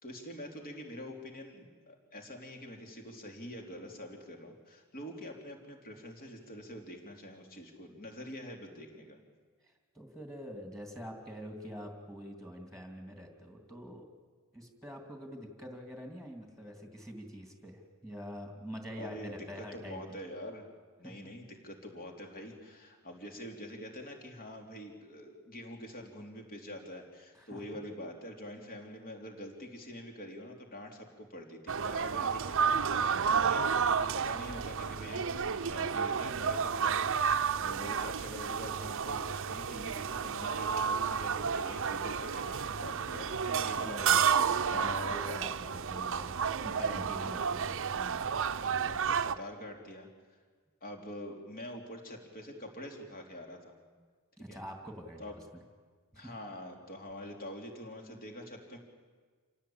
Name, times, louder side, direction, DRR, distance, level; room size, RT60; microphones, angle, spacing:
voice 1, 0.0-9.2 18.9-19.4 19.7-20.6 21.0-33.7 34.0-45.4 47.4-47.5 48.6-50.1 50.8-53.7 54.5-54.6 55.2-55.3 56.1-58.8, left 1 dB, 45° left, 2 dB, 3.5 m, -45 dB
voice 2, 9.6-14.0 14.5-20.2 21.0-21.3 27.3-27.8 32.8-33.5 43.8-44.3 44.7-48.7 54.4-55.4 56.1-56.3, equal, ahead, 3 dB, 2.8 m, -46 dB
sound 1, 31.7-49.3, right 6 dB, 60° right, 0.8 m, -31 dB
27.5 x 17.5 x 8.8 m, 1.5 s
head